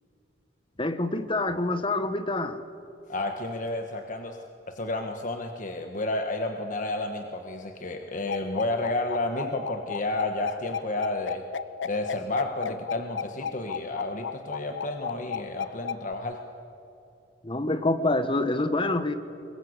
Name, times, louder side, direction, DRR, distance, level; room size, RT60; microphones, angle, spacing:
voice 1, 0.8-2.6 17.4-19.1, left 2 dB, 30° left, 11 dB, 1.2 m, -26 dB
voice 2, 3.1-4.4 4.7-11.4 11.8-16.4, left 2 dB, 45° left, 4 dB, 1.3 m, -31 dB
sound 1, 8.3-16.1, left 7 dB, 75° left, 0.6 m, -34 dB
22.5 x 22.5 x 8.0 m, 2.8 s
head